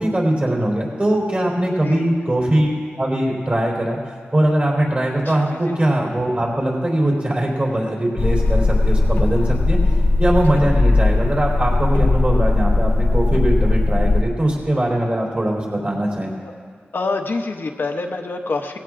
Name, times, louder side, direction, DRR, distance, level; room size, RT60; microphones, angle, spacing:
voice 1, 0.0-2.7 3.0-4.0 4.3-9.8 10.2-16.3, right 1 dB, 40° right, -3 dB, 3.7 m, -21 dB
voice 2, 5.3-5.7 16.4-16.5 16.9-18.8, left 3 dB, 65° left, 4 dB, 0.8 m, -26 dB
sound 1, 8.2-14.2, left 2 dB, 85° left, 1.3 m, -18 dB
18.5 x 16.0 x 2.5 m, 2.1 s
wide cardioid pair, 70°, 4 cm